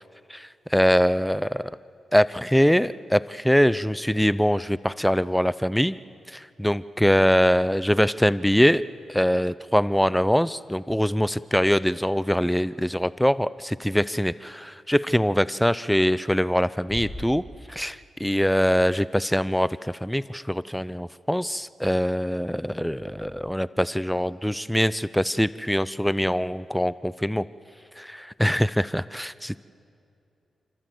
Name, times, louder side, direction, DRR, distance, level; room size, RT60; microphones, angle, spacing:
voice 1, 0.3-1.7 2.1-6.0 6.3-17.4 17.7-27.5 28.0-29.6, equal, 5° left, 17 dB, 0.4 m, -23 dB
Bass drum, 16.9-18.3, equal, 15° right, 4.9 m, -39 dB
30.0 x 12.5 x 7.8 m, 2.5 s
cardioid pair, 75°, 0 cm